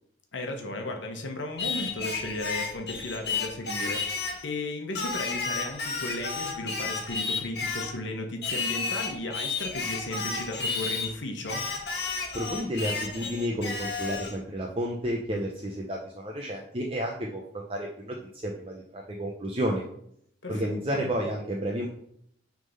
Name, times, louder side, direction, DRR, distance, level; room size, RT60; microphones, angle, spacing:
voice 1, 0.3-4.1 4.4-11.6 20.4-21.1, left 2 dB, 90° left, 3 dB, 1.2 m, -35 dB
Singing, 1.6-4.4 5.0-8.0 8.4-11.1 11.5-14.4, left 4 dB, 60° left, 1.5 m, -32 dB
voice 2, 12.3-19.9 20.5-21.9, equal, 30° right, 0 dB, 0.7 m, -31 dB
6.5 x 3.8 x 5.5 m, 0.70 s
head